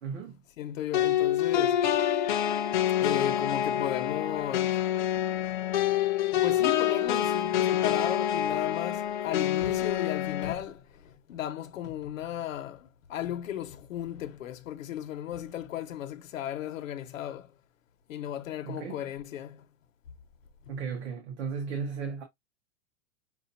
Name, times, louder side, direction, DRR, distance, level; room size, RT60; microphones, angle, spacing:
voice 1, 0.0-0.4 18.6-19.0 20.7-22.2, right 6 dB, 55° right, 1.4 m, -35 dB
voice 2, 0.6-1.8 3.0-4.8 6.3-17.5 18.1-19.6, left 11 dB, 70° left, 1.2 m, -35 dB
sound 1, 0.9-10.5, left 11 dB, 35° left, 0.6 m, -27 dB
6.2 x 2.7 x 2.7 m
supercardioid pair, 175°, 41 cm